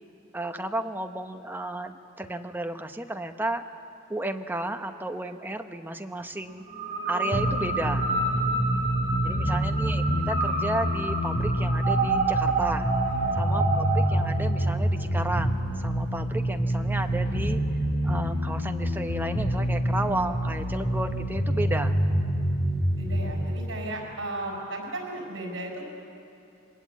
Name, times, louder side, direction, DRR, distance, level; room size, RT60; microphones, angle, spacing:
voice 1, 0.3-3.6 4.1-6.6 7.1-8.1 9.2-12.9 13.3-17.6 18.0-21.9, right 1 dB, 10° right, 6 dB, 0.9 m, -33 dB
sound 1, 6.7-14.2, right 3 dB, 25° right, 7.0 m, -29 dB
sound 2, 7.3-23.3, equal, 60° left, 4.0 m, -27 dB
voice 2, 8.2-9.6 13.0-13.4 23.0-25.9, right 1 dB, 65° right, 1 dB, 6.0 m, -37 dB
24.0 x 20.5 x 8.5 m, 2.7 s
head